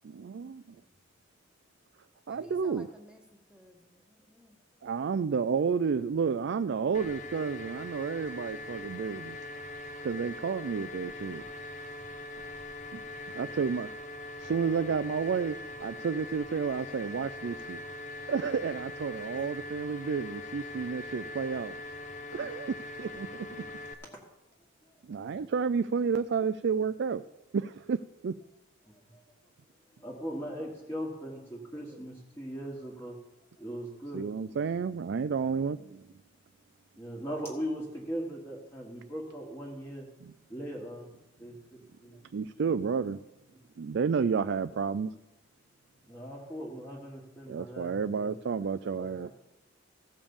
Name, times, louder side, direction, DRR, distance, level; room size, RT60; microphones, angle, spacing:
voice 1, 0.0-0.8 2.3-2.9 4.8-9.4 10.0-11.4 12.9-13.0 13.3-13.9 14.4-15.6 15.8-17.8 18.3-21.8 22.3-23.7 25.0-27.2 27.5-28.0 28.2-28.3 34.1-36.0 40.2-40.3 42.3-43.2 43.8-45.1 47.5-49.3, right 5 dB, 60° right, 12 dB, 0.4 m, -31 dB
voice 2, 2.3-3.2 3.5-4.6, equal, 5° right, 3 dB, 1.3 m, -53 dB
sound 1, 6.9-23.9, left 2 dB, 35° left, 0.8 m, -42 dB
voice 3, 28.9-29.2 30.0-33.2 33.6-34.7 36.9-41.1 41.4-42.2 43.5-43.6 46.1-48.5 49.0-49.3, equal, 10° left, -3 dB, 1.6 m, -40 dB
15.5 x 5.2 x 7.1 m, 0.93 s
head